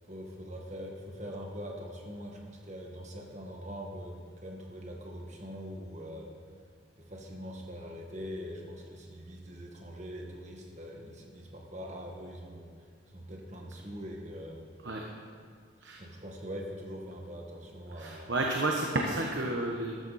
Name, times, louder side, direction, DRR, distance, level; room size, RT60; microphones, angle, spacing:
voice 1, 0.0-6.3 7.0-12.7 13.1-14.6 16.0-18.3, equal, 35° right, 0 dB, 1.9 m, -43 dB
voice 2, 17.9-20.0, right 2 dB, 65° right, 0 dB, 1.2 m, -31 dB
14.0 x 13.5 x 4.3 m, 2.1 s
head